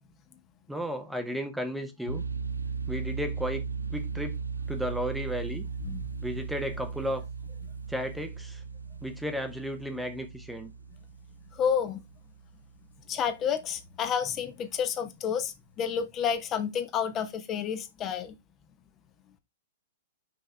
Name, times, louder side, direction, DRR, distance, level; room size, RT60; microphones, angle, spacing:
voice 1, 0.7-2.2 2.9-3.6 3.9-4.4 4.7-5.7 6.2-7.2 7.9-8.6 9.0-10.7, equal, ahead, 0.8 m, -34 dB
sound 1, 2.1-12.9, right 5 dB, 85° right, 0.7 m, -37 dB
voice 2, 11.5-12.0 13.1-18.3, left 7 dB, 25° left, 0.9 m, -30 dB
5.5 x 5.5 x 3.4 m
figure-of-eight pair, 105°, 0 cm